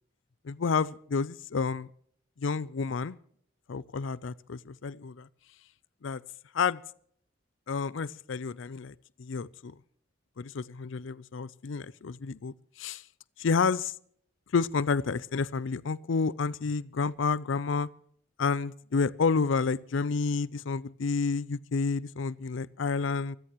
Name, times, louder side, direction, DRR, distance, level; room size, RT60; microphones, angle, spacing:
voice 1, 0.4-1.9 2.4-3.2 3.7-5.3 6.0-6.2 6.5-6.8 7.7-9.7 10.4-13.0 13.4-13.9 14.5-17.9 18.4-23.4, left 4 dB, 70° left, 20 dB, 0.5 m, -30 dB
25.0 x 15.5 x 3.0 m, 0.63 s
head